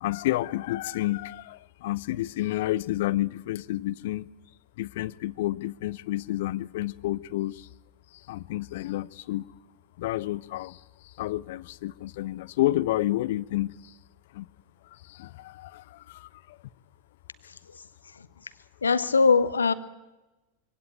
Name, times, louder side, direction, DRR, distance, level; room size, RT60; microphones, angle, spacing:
voice 1, 0.0-4.3 4.8-7.7 8.1-9.5 10.0-13.9 14.3-14.5 14.9-16.6, left 16 dB, 55° left, 20 dB, 0.7 m, -30 dB
voice 2, 18.8-19.7, left 4 dB, 75° left, 14 dB, 1.2 m, -21 dB
23.5 x 17.0 x 9.1 m, 1.0 s
figure-of-eight pair, 90°, 0 cm